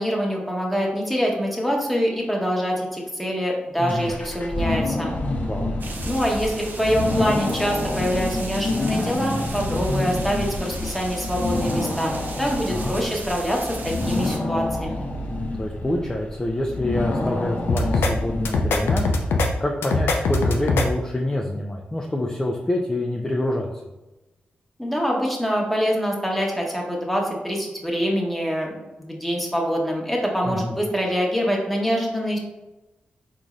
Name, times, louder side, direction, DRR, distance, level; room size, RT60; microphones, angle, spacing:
voice 1, 0.0-5.2 6.0-12.1 12.4-15.0 24.8-28.7 29.0-32.4, equal, ahead, -1 dB, 1.1 m, -25 dB
voice 2, 3.8-4.1 5.5-5.7 9.9-10.1 12.7-13.0 15.5-19.1 19.6-23.7 30.5-30.8, left 1 dB, 15° left, -1 dB, 0.5 m, -26 dB
sound 1, 3.9-19.3, left 2 dB, 50° left, 0.7 m, -28 dB
sound 2, 5.8-14.4, right 3 dB, 55° right, 0.6 m, -37 dB
sound 3, 17.7-18.1 18.5-19.5 19.8-20.9, left 3 dB, 85° left, 0.4 m, -21 dB
3.9 x 3.0 x 2.5 m, 1.0 s
cardioid pair, 45°, 4 cm